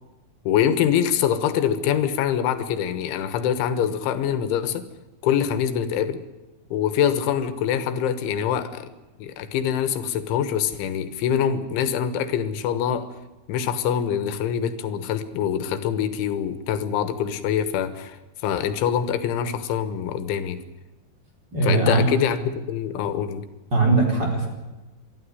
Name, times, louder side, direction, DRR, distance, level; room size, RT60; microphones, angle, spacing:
voice 1, 0.5-4.8 5.2-6.2 6.7-8.9 9.2-13.1 13.5-18.2 18.4-20.6 21.6-23.5, left 9 dB, 85° left, 11 dB, 3.7 m, -24 dB
voice 2, 21.5-22.0 23.7-24.5, right 3 dB, 25° right, 0 dB, 4.7 m, -20 dB
25.0 x 12.5 x 9.7 m, 1.1 s
omnidirectional pair, 5.3 m